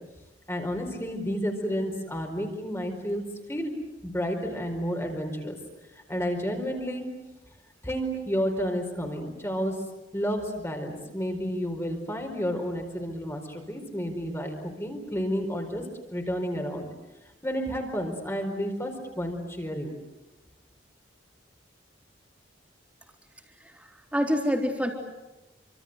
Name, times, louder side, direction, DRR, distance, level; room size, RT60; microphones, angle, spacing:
voice 1, 0.5-3.2 3.5-3.7 4.0-5.6 5.9-7.0 7.8-9.7 10.1-15.8 16.1-16.9 17.4-19.9, equal, 15° left, 3 dB, 4.6 m, -31 dB
voice 2, 23.6-24.9, equal, 5° right, 2 dB, 3.9 m, -27 dB
28.5 x 26.0 x 8.0 m, 1.0 s
head